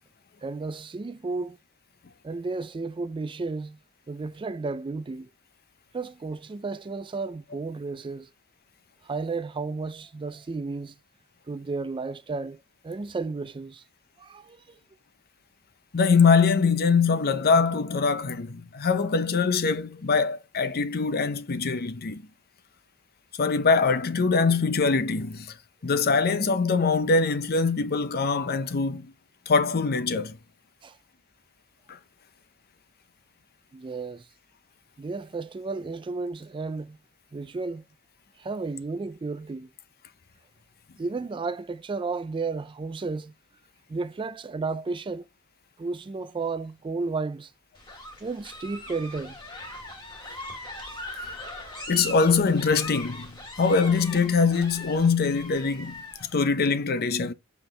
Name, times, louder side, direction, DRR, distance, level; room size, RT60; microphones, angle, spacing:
voice 1, 0.4-1.6 2.2-3.8 4.1-5.3 5.9-8.3 9.0-11.0 11.5-12.6 12.8-13.8 14.2-14.8 30.8-31.0 33.7-34.3 35.0-37.0 37.3-37.8 38.4-39.7 41.0-43.3 43.9-45.3 45.8-47.5 48.2-49.4 50.8-51.0, right 3 dB, 25° right, 0.3 m, -33 dB
voice 2, 15.9-22.2 23.4-25.5 25.8-29.1 29.5-30.4 31.9-32.0 51.9-53.3 53.6-57.3, left 4 dB, 45° left, 0.7 m, -23 dB
sound 1, 47.7-56.3, left 1 dB, 25° left, 3.0 m, -40 dB
7.7 x 4.3 x 3.2 m
head